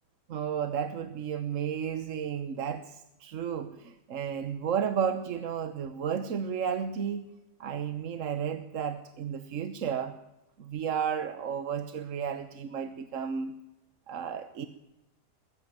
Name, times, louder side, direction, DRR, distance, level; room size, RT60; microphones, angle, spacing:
voice 1, 0.3-7.3 7.6-10.1 10.6-13.5 14.1-14.7, right 7 dB, 55° right, 11 dB, 1.2 m, -33 dB
21.0 x 14.0 x 8.9 m, 0.96 s
omnidirectional pair, 1.8 m